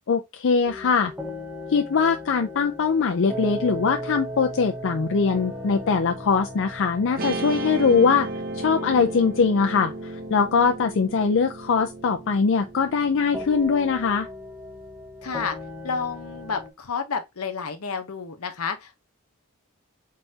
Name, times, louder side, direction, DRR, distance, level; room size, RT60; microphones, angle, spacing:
voice 1, 0.1-1.1 1.7-8.3 8.5-14.3, left 5 dB, 60° left, 0.5 m, -22 dB
sound 1, 0.7-16.7, equal, 10° right, 0.8 m, -38 dB
Guitar, 7.2-13.6, right 2 dB, 45° right, 0.8 m, -34 dB
voice 2, 15.2-15.6 15.8-19.0, left 5 dB, 75° left, 0.9 m, -30 dB
4.1 x 3.8 x 2.8 m
head